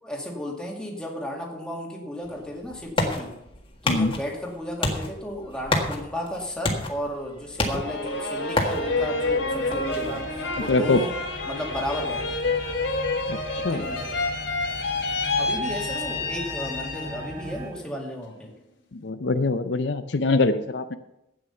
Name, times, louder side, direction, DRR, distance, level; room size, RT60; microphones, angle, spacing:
voice 1, 0.0-3.4 3.8-11.2 11.5-12.7 13.7-14.3 15.4-18.5, left 1 dB, 5° left, -1 dB, 2.1 m, -34 dB
sound 1, 2.2-13.7, left 2 dB, 25° left, 1.7 m, -32 dB
sound 2, 7.6-17.4 17.8-18.5, left 3 dB, 85° left, 3.3 m, -29 dB
sound 3, 8.7-17.7, equal, 45° right, 5.7 m, -39 dB
voice 2, 10.7-11.1 13.3-13.8 18.9-21.0, left 3 dB, 70° left, 10 dB, 0.6 m, -23 dB
12.5 x 8.8 x 5.5 m, 0.84 s
head